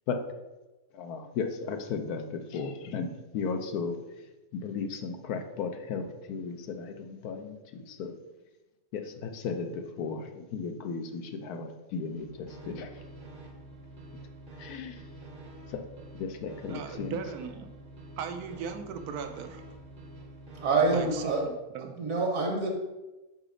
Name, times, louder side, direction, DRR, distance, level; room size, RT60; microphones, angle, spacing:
voice 1, 0.9-4.0 4.5-8.1 8.9-13.0 14.6-15.0 15.7-15.8 16.1-17.2, left 5 dB, 90° left, 6 dB, 1.2 m, -35 dB
sound 1, 12.0-21.5, right 2 dB, 45° right, 0.7 m, -47 dB
voice 2, 16.7-17.7 18.2-19.6 20.9-22.1, right 6 dB, 90° right, 7 dB, 1.1 m, -38 dB
voice 3, 20.6-21.5 22.0-22.7, right 3 dB, 65° right, 1 dB, 1.3 m, -26 dB
4.9 x 4.2 x 4.9 m, 1.1 s
omnidirectional pair, 1.6 m